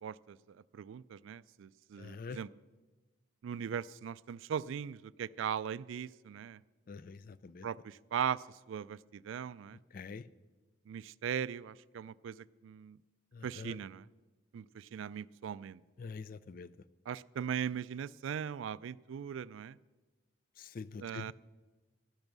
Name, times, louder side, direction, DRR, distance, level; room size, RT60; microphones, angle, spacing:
voice 1, 0.0-2.5 3.4-6.6 7.6-9.8 10.9-13.0 13.4-14.1 14.5-15.8 17.1-19.8 21.0-21.3, right 8 dB, 80° right, 20 dB, 0.3 m, -39 dB
voice 2, 2.0-2.4 6.9-7.7 9.9-10.2 13.3-13.8 16.0-16.7 20.6-21.3, left 4 dB, 45° left, 17 dB, 0.4 m, -45 dB
12.5 x 10.5 x 6.1 m, 1.2 s
head